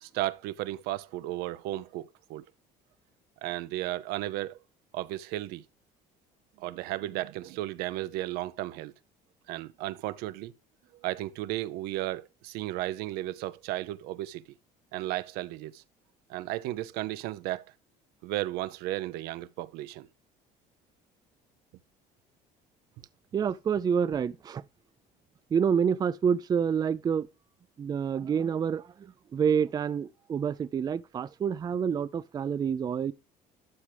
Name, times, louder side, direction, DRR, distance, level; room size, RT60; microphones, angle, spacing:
voice 1, 0.0-2.4 3.4-4.6 4.9-5.6 6.6-8.9 9.5-10.5 11.0-14.4 14.9-15.8 16.3-17.6 18.2-20.1, right 15 dB, 80° right, 0.7 m, -34 dB
voice 2, 23.3-24.6 25.5-27.3 27.8-33.1, right 7 dB, 25° right, 0.4 m, -28 dB
12.0 x 6.1 x 3.3 m
cardioid pair, 120°, 16 cm